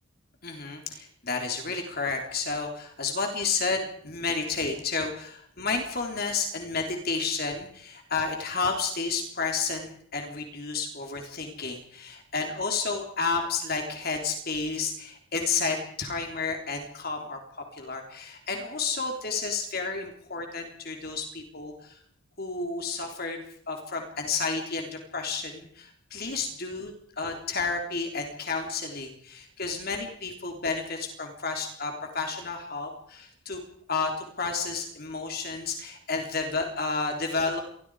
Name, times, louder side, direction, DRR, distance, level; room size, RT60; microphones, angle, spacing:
voice 1, 0.4-22.0 22.4-26.9 27.2-33.6 33.9-37.6, left 4 dB, 45° left, 3 dB, 3.7 m, -31 dB
28.0 x 22.5 x 5.0 m, 0.65 s
head